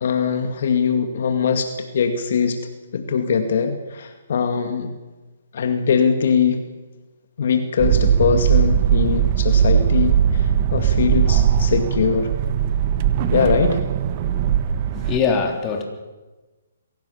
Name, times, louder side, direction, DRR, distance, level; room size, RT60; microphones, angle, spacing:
voice 1, 0.0-2.6 2.9-4.9 5.5-6.6 7.4-12.3 13.3-13.8, left 6 dB, 60° left, 7 dB, 2.2 m, -21 dB
sound 1, 7.8-15.2, right 9 dB, 35° right, 1.4 m, -19 dB
voice 2, 14.9-15.8, left 5 dB, 25° left, 3 dB, 3.5 m, -22 dB
23.5 x 17.0 x 7.2 m, 1.2 s
hypercardioid pair, 145°, 0 cm